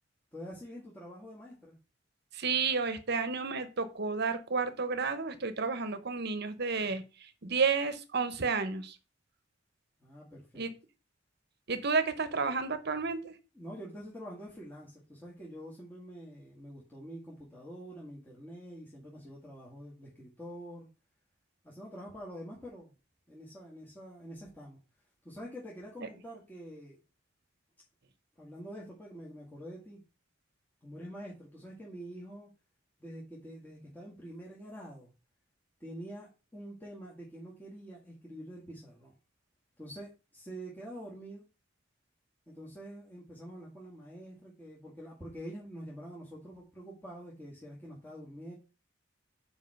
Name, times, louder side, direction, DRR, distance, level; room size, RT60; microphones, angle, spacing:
voice 1, 0.3-1.8 10.0-10.7 13.6-20.9 21.6-23.0 23.3-24.8 25.2-27.0 28.4-30.0 30.8-32.5 33.0-35.1 35.8-39.1 39.8-41.4 42.5-48.5, equal, 10° left, -5 dB, 1.9 m, -46 dB
voice 2, 2.3-9.0 10.5-10.7 11.7-13.3, right 4 dB, 55° right, 11 dB, 1.0 m, -31 dB
5.4 x 4.9 x 6.5 m, 0.31 s
head